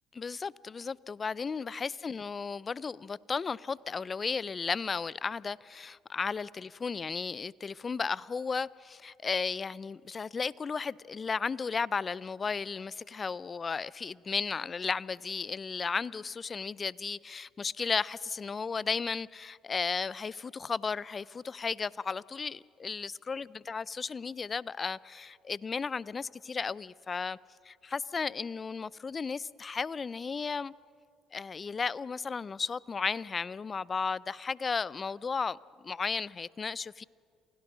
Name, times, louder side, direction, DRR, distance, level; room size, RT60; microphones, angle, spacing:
voice 1, 0.2-27.4 27.6-30.7 31.3-37.0, left 5 dB, 35° left, 0.4 m, -34 dB
28.5 x 16.5 x 6.2 m
hypercardioid pair, 65°, 0 cm